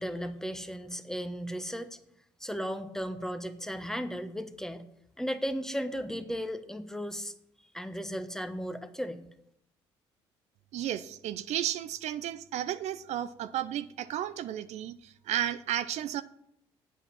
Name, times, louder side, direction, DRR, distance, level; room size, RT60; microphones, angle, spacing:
voice 1, 0.0-2.0 2.4-4.8 5.2-7.3 7.7-9.2, equal, 5° left, 9 dB, 1.1 m, -35 dB
voice 2, 10.7-16.2, right 11 dB, 65° right, 13 dB, 0.5 m, -33 dB
8.3 x 8.2 x 5.6 m, 0.76 s
hypercardioid pair, 65°, 13 cm